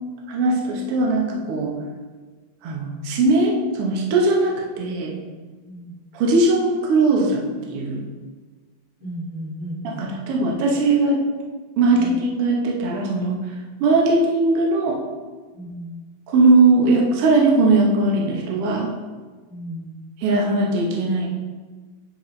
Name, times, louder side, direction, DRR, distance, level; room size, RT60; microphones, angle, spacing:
voice 1, 0.3-1.7 2.6-5.1 6.1-8.0 9.8-11.2 11.8-13.4 13.8-15.0 16.3-18.9 20.2-21.3, right 2 dB, 85° right, -1 dB, 1.2 m, -19 dB
voice 2, 5.6-6.0 9.0-10.1 11.9-12.2 15.5-16.0 19.5-19.9, equal, 30° right, -8 dB, 0.5 m, -34 dB
9.7 x 4.1 x 3.2 m, 1.4 s
omnidirectional pair, 4.1 m